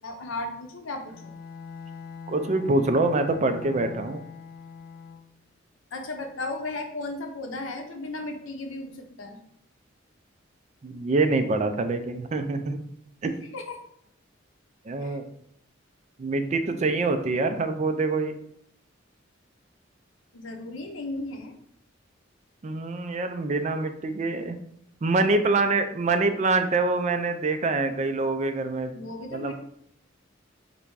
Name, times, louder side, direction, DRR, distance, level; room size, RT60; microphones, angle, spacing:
voice 1, 0.0-1.3 5.9-9.4 13.5-13.8 15.0-15.2 20.3-21.5 28.9-29.5, left 2 dB, 90° left, 4 dB, 0.7 m, -35 dB
Bowed string instrument, 1.1-5.4, left 5 dB, 50° left, 0.3 m, -41 dB
voice 2, 2.3-4.2 10.8-12.8 13.2-13.4 14.9-15.3 16.2-18.3 22.6-24.6 25.0-28.9 29.3-29.5, right 3 dB, 35° right, 7 dB, 0.4 m, -25 dB
3.3 x 2.6 x 4.6 m, 0.71 s
head